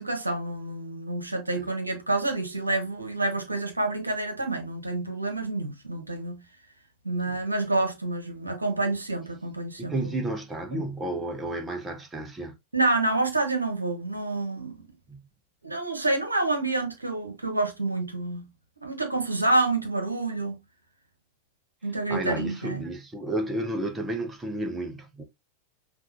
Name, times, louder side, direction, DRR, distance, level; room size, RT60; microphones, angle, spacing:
voice 1, 0.0-6.4 7.0-10.1 10.7-10.8 12.7-14.8 15.6-18.5 18.8-20.6 21.8-22.8, right 2 dB, 80° right, 0.9 m, -28 dB
voice 2, 9.8-12.5 15.1-15.2 22.1-25.2, right 1 dB, 15° right, 0.7 m, -32 dB
5.6 x 2.5 x 2.6 m
figure-of-eight pair, 90°, 0 cm